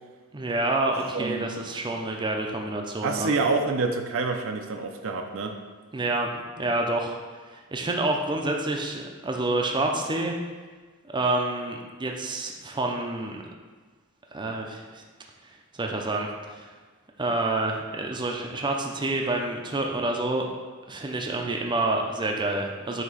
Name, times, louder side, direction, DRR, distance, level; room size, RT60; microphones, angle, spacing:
voice 1, 0.3-3.3 5.9-6.3 6.6-7.2 7.5-10.3 11.1-13.4 14.3-15.0 15.7-16.7 17.2-20.5 20.9-23.0, right 2 dB, 20° right, 1 dB, 0.6 m, -28 dB
voice 2, 1.1-1.5 3.0-5.6, right 3 dB, 65° right, 4 dB, 0.6 m, -27 dB
8.1 x 2.9 x 5.5 m, 1.4 s
head